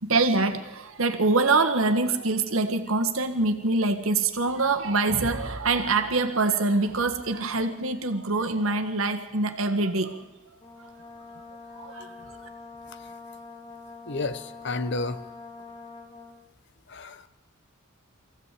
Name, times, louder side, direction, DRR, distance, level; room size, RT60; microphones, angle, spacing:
voice 1, 0.0-10.2 10.8-10.9 11.7-12.1, right 3 dB, 75° right, 6 dB, 1.7 m, -25 dB
Brass instrument, 10.6-16.4, left 3 dB, 25° left, 1.9 m, -45 dB
voice 2, 14.0-15.2 16.9-17.3, left 3 dB, 55° left, 12 dB, 1.0 m, -32 dB
23.5 x 15.5 x 8.4 m, 1.1 s
head